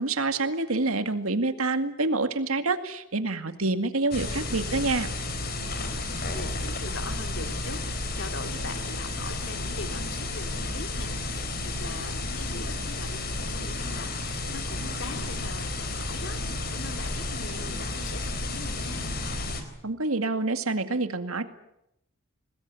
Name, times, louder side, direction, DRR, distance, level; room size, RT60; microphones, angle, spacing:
voice 1, 0.0-5.1 19.8-21.4, right 3 dB, 90° right, 9 dB, 2.2 m, -27 dB
sound 1, 4.1-19.6, left 2 dB, 45° left, 4.1 m, -32 dB
voice 2, 5.6-19.1, left 2 dB, 60° left, 7 dB, 2.4 m, -42 dB
25.5 x 20.0 x 9.2 m, 0.80 s
head